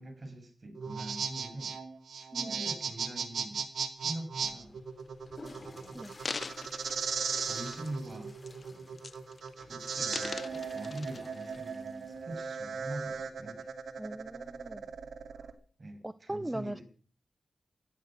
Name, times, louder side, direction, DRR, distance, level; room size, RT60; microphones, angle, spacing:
voice 1, 0.0-1.8 2.1-3.7 4.0-4.8 5.6-6.1 7.4-8.4 8.7-9.0 9.7-13.7 15.8-16.8, right 1 dB, 45° right, 6.5 m, -44 dB
sound 1, 0.8-15.5, right 6 dB, 85° right, 2.2 m, -37 dB
Water / Toilet flush, 4.3-12.7, left 2 dB, 40° left, 3.8 m, -55 dB
sound 2, 5.2-5.4 6.0-8.1 8.4-8.7 9.0-9.5 9.9-11.6 12.2-12.3, left 4 dB, 55° left, 0.8 m, -42 dB
voice 2, 14.0-14.8 16.0-16.8, right 1 dB, 15° right, 0.8 m, -39 dB
15.5 x 13.0 x 6.3 m
cardioid pair, 55°, 0 cm